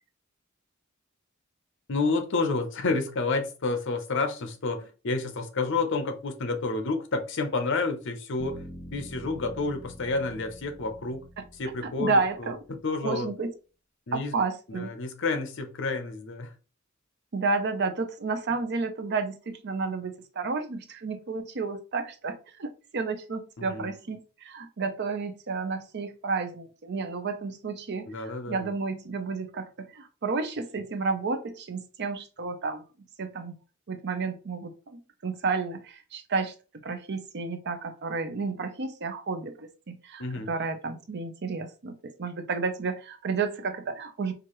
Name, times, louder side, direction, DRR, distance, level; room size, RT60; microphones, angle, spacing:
voice 1, 1.9-11.3 11.6-13.3 14.1-14.3 14.7-16.5 23.6-23.9 28.1-28.7 40.2-40.5, left 3 dB, 60° left, 0.7 m, -30 dB
sound 1, 8.4-12.4, equal, 40° left, 1.6 m, -46 dB
voice 2, 11.8-12.6 13.0-13.5 14.1-14.9 17.3-28.1 28.5-32.8 33.2-33.6 33.9-36.5 36.8-44.3, right 4 dB, 55° right, 0.6 m, -31 dB
4.6 x 2.5 x 3.0 m
head